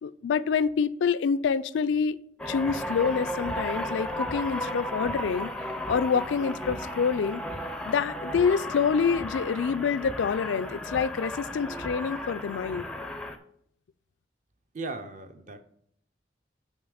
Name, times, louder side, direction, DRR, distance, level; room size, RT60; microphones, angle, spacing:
voice 1, 0.0-2.2 2.5-5.5 5.9-7.4 7.8-12.9, left 6 dB, 85° left, 0.3 m, -27 dB
sound 1, 2.4-13.4, equal, 5° left, 0.4 m, -34 dB
voice 2, 14.7-15.6, right 3 dB, 45° right, 0.7 m, -37 dB
7.2 x 4.4 x 4.8 m
head